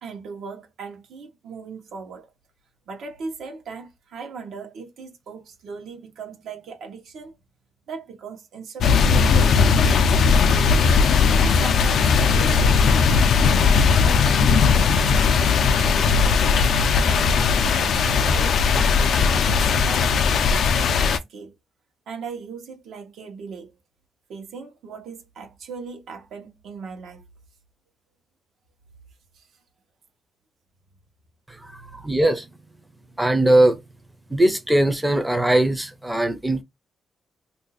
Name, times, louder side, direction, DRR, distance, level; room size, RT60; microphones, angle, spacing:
voice 1, 0.0-2.3 2.9-7.4 7.9-10.9 11.4-13.1 13.4-14.3 14.6-15.4 15.7-16.5 17.0-20.2 20.6-21.5 22.1-23.7 24.3-27.2 29.3-29.5, right 5 dB, 80° right, 1.0 m, -38 dB
sound 1, 8.8-21.2, left 5 dB, 70° left, 0.4 m, -18 dB
voice 2, 31.9-32.5 33.2-33.8 34.3-36.6, right 1 dB, 5° right, 0.6 m, -20 dB
2.7 x 2.4 x 4.0 m
wide cardioid pair, 150°, 0 cm